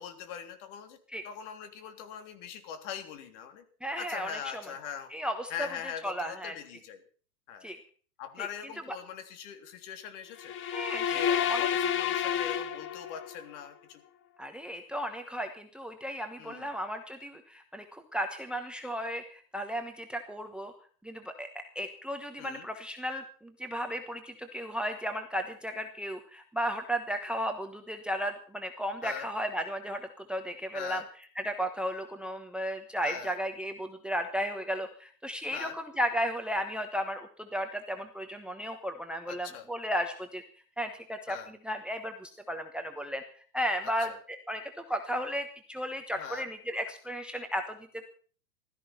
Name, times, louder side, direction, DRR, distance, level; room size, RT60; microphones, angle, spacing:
voice 1, 0.0-3.6 3.9-5.1 5.5-7.0 7.5-7.7 8.2-10.6 11.1-14.0 16.4-16.7 22.4-22.7 29.0-29.3 30.7-31.1 33.0-33.4 35.5-35.8 39.3-39.7 41.3-41.5 43.8-44.2 46.2-46.5, left 8 dB, 45° left, 8 dB, 3.3 m, -42 dB
voice 2, 3.8-4.4 5.1-5.7 6.0-6.5 7.6-7.8 8.4-8.5 10.7-11.7 14.4-20.7 21.0-21.5 21.7-30.0 30.3-31.0 31.4-40.4 40.8-41.4 41.6-43.2 43.5-47.8, equal, ahead, 7 dB, 1.2 m, -34 dB
sound 1, 10.4-13.4, left 9 dB, 25° left, 1.1 m, -30 dB
16.0 x 13.5 x 5.7 m, 0.43 s
hypercardioid pair, 125°, 48 cm